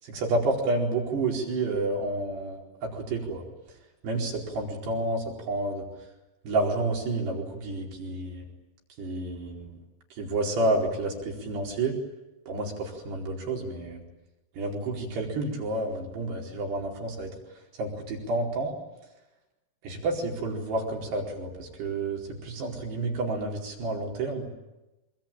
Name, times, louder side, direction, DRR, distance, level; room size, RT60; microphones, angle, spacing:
voice 1, 0.0-3.4 4.0-5.9 6.4-8.5 9.0-9.7 10.1-12.0 12.5-14.0 14.6-17.3 17.8-18.7 19.8-24.5, right 2 dB, 80° right, -1 dB, 6.7 m, -30 dB
26.0 x 25.5 x 8.9 m, 1.0 s
omnidirectional pair, 4.6 m